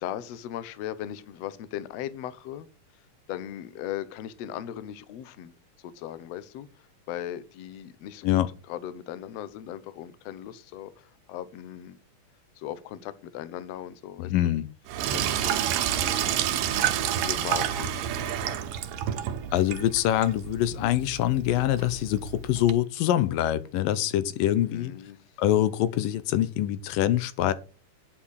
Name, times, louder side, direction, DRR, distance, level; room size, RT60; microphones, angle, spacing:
voice 1, 0.0-2.7 3.3-12.0 12.6-14.3 15.1-16.6 17.0-18.6 24.6-25.3, left 11 dB, 70° left, 1.7 m, -38 dB
voice 2, 14.2-14.7 19.5-24.9 25.4-27.5, left 12 dB, 90° left, 2.5 m, -24 dB
Sink (filling or washing), 14.9-22.7, right 10 dB, 90° right, 2.6 m, -29 dB
9.9 x 6.1 x 6.4 m
omnidirectional pair, 3.8 m